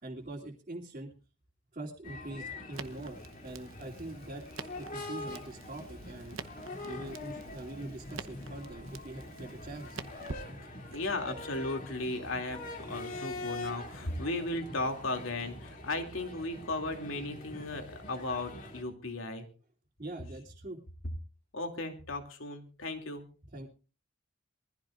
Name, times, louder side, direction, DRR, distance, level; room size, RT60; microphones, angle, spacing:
voice 1, 0.0-1.1 1.7-6.4 6.9-10.0 10.8-10.9 20.0-20.8 23.5-23.7, right 2 dB, 40° right, -4 dB, 2.9 m, -43 dB
sound 1, 2.0-18.8, left 2 dB, 45° left, 2.8 m, -44 dB
Crackle, 2.7-11.0, right 4 dB, 90° right, 1.0 m, -48 dB
voice 2, 10.6-19.5 21.5-23.3, left 2 dB, 80° left, 5 dB, 2.8 m, -36 dB
23.0 x 15.0 x 2.5 m, 0.35 s
head